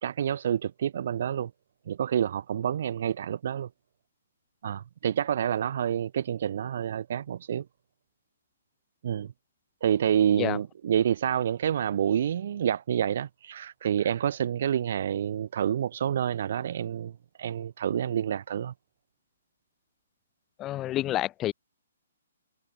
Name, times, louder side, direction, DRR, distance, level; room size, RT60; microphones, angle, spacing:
voice 1, 0.0-1.5 1.9-3.7 4.6-7.6 9.0-9.3 9.8-17.1 17.4-18.7, right 9 dB, 55° right, 2.5 m, -28 dB
voice 2, 20.6-21.5, left 14 dB, 20° left, 3.9 m, -29 dB
hypercardioid pair, 145°, 0 cm